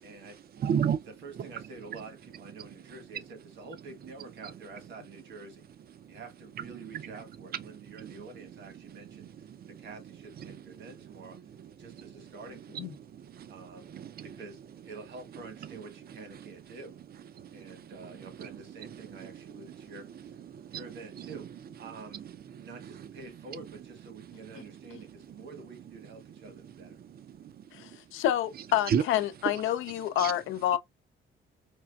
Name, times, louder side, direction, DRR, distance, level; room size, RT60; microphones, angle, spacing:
voice 1, 0.0-5.7 6.1-11.4 11.8-12.9 13.5-17.0 17.5-20.4 20.7-27.0, right 3 dB, 65° right, 1.5 m, -48 dB
voice 2, 0.6-1.1 8.0-8.2 9.2-9.8 10.4-10.6 11.6-11.7 13.0-14.3 17.4-18.6 18.8-19.6 20.5-20.8 21.2-21.4 22.1-22.2 27.0-27.9 28.9-29.0 30.2-30.3, right 8 dB, 50° right, 0.5 m, -34 dB
voice 3, 27.7-30.8, left 12 dB, 85° left, 0.5 m, -28 dB
4.4 x 2.4 x 2.3 m
cardioid pair, 90°, 20 cm